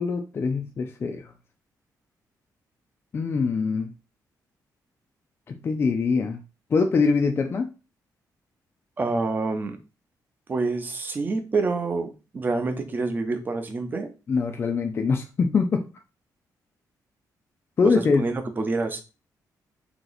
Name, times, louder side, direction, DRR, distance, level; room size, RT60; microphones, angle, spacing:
voice 1, 0.0-1.3 3.1-3.9 5.5-6.4 6.7-7.7 14.3-15.9 17.8-18.2, left 4 dB, 35° left, 5 dB, 0.4 m, -23 dB
voice 2, 9.0-9.8 10.5-14.1 17.9-19.0, right 3 dB, 25° right, 6 dB, 0.6 m, -27 dB
2.9 x 2.9 x 3.9 m, 0.30 s
wide cardioid pair, 145°, 7 cm